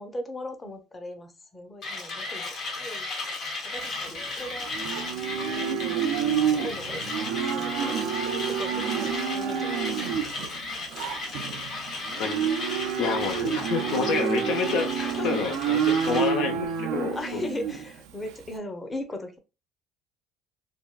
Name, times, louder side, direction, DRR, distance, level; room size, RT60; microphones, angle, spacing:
voice 1, 0.0-3.1 3.6-5.1 5.5-6.0 6.6-10.6 15.0-15.4 17.0-19.4, left 1 dB, 25° left, 0.7 m, -39 dB
Mechanisms, 1.8-16.4, left 3 dB, 55° left, 1.0 m, -35 dB
Livestock farm animals working animals, 3.8-18.5, right 8 dB, 75° right, 0.4 m, -29 dB
voice 2, 12.2-12.5 13.0-17.5, left 6 dB, 70° left, 0.4 m, -29 dB
3.4 x 2.2 x 2.2 m
supercardioid pair, 80°, 0 cm